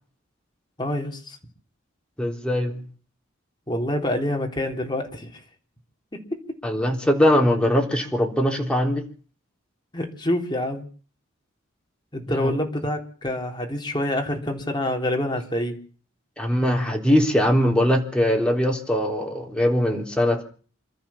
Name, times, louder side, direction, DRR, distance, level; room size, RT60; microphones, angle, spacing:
voice 1, 0.8-1.4 3.7-5.3 6.3-6.6 9.9-10.9 12.1-15.8, left 1 dB, 20° left, 3 dB, 3.7 m, -27 dB
voice 2, 2.2-2.8 6.6-9.0 12.4-12.5 16.4-20.4, equal, 5° left, 2 dB, 3.8 m, -21 dB
27.0 x 13.5 x 7.3 m, 0.43 s
head